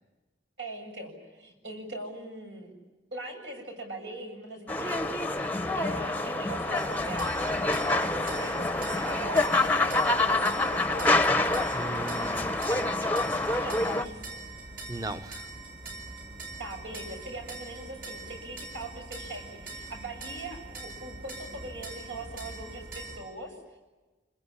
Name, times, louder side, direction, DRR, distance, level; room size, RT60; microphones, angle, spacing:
voice 1, 0.6-2.7 3.1-8.6 8.9-11.3 13.5-14.4 16.6-23.8, right 2 dB, 75° right, 4 dB, 7.7 m, -41 dB
sound 1, 4.7-14.0, left 2 dB, 10° left, 0.8 m, -27 dB
sound 2, 6.7-23.2, right 3 dB, 50° right, 7.4 m, -43 dB
voice 2, 11.7-13.2 14.9-15.5, right 2 dB, 20° right, 10 dB, 0.9 m, -38 dB
28.0 x 21.0 x 9.9 m, 1.2 s
head